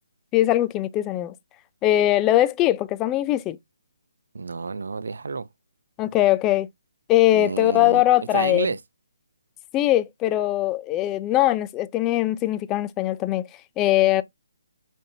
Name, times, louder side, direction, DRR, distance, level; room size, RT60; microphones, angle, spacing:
voice 1, 0.3-1.3 1.8-3.6 6.0-6.7 7.1-8.7 9.7-13.5 13.8-14.2, left 14 dB, 15° left, 0.3 m, -21 dB
voice 2, 4.3-5.5 7.3-8.0 8.3-8.8, right 4 dB, 75° right, 0.5 m, -29 dB
5.2 x 2.6 x 2.7 m
hypercardioid pair, 155°, 0 cm